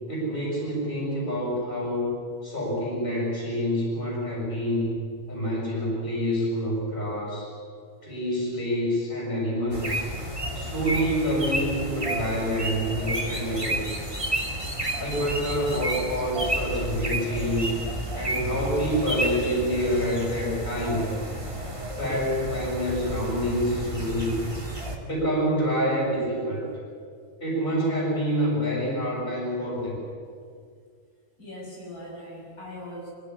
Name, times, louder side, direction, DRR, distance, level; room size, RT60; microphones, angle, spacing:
voice 1, 0.1-2.1 2.4-5.0 5.3-7.5 8.0-10.1 10.5-14.0 15.0-17.8 18.1-21.1 21.9-24.5 25.0-26.7 27.4-30.0, equal, 35° left, -4 dB, 7.3 m, -27 dB
sound 1, 9.7-25.0, right 1 dB, 20° right, 2.4 m, -31 dB
voice 2, 31.4-33.1, left 1 dB, 75° left, -4 dB, 7.1 m, -40 dB
25.5 x 16.0 x 9.8 m, 2.1 s
omnidirectional pair, 1.6 m